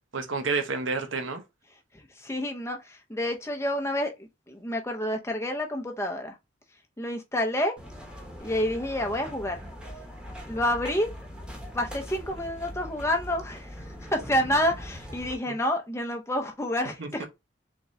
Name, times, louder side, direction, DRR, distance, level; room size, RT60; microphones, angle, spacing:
voice 1, 0.0-1.4 15.5-15.6 17.0-17.3, right 4 dB, 75° right, 0.9 m, -30 dB
voice 2, 1.9-6.4 7.0-7.8 8.4-9.6 10.5-11.1 11.7-17.3, left 1 dB, 15° left, 0.6 m, -29 dB
sound 1, 7.8-15.3, equal, 5° right, 1.0 m, -41 dB
3.8 x 3.6 x 3.1 m
head